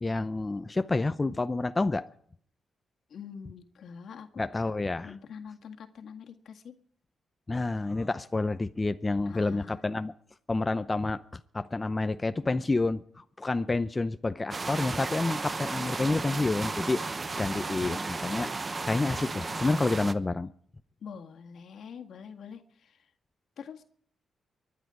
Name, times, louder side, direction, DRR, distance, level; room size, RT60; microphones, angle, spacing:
voice 1, 0.0-2.0 4.4-5.1 7.5-10.1 10.5-18.5 18.9-20.5, left 3 dB, 25° left, 10 dB, 0.6 m, -29 dB
voice 2, 3.1-4.4 5.0-6.8 9.3-9.8 21.0-23.1 23.6-23.8, left 6 dB, 70° left, 5 dB, 1.8 m, -45 dB
sound 1, 14.5-20.1, right 3 dB, 35° right, 1.0 m, -34 dB
24.0 x 10.5 x 4.9 m, 0.62 s
cardioid pair, 80°, 0 cm